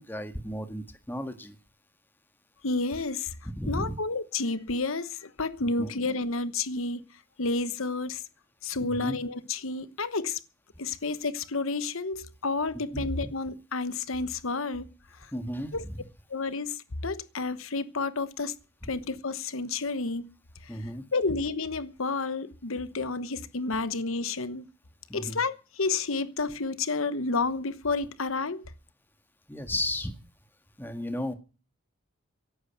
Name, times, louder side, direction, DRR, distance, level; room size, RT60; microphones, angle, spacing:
voice 1, 0.0-1.6 3.6-3.9 5.6-5.9 8.8-9.2 12.9-13.0 15.3-16.0 20.7-21.0 25.1-25.4 29.5-30.2 30.8-31.3, left 1 dB, 10° left, 1.7 m, -34 dB
voice 2, 2.6-3.3 3.7-7.0 7.4-8.2 8.6-10.4 10.8-14.9 15.2-15.3 15.7-15.8 16.3-18.5 18.9-20.2 20.6-20.7 21.1-24.6 25.1-28.7, left 3 dB, 65° left, 1.1 m, -30 dB
16.0 x 11.5 x 6.0 m
head